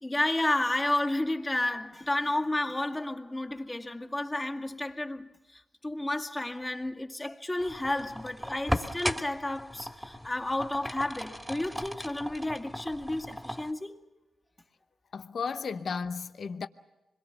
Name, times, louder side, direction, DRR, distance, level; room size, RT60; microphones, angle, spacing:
voice 1, 0.0-14.0, left 1 dB, 20° left, 2.1 m, -31 dB
sound 1, 7.6-13.7, equal, ahead, 2.1 m, -37 dB
voice 2, 15.1-16.7, left 5 dB, 65° left, 0.9 m, -34 dB
26.0 x 22.0 x 6.9 m
supercardioid pair, 40°, 0 cm